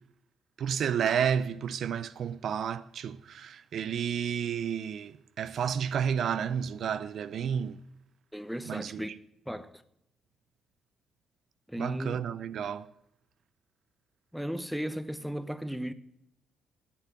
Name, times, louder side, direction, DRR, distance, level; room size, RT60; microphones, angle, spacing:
voice 1, 0.6-7.8 8.7-9.2 11.8-12.9, right 8 dB, 65° right, 0.5 m, -31 dB
voice 2, 8.3-9.1 9.5-9.7 11.7-12.2 14.3-15.9, equal, ahead, 0.8 m, -35 dB
8.3 x 8.3 x 8.8 m
cardioid pair, 90°, 0 cm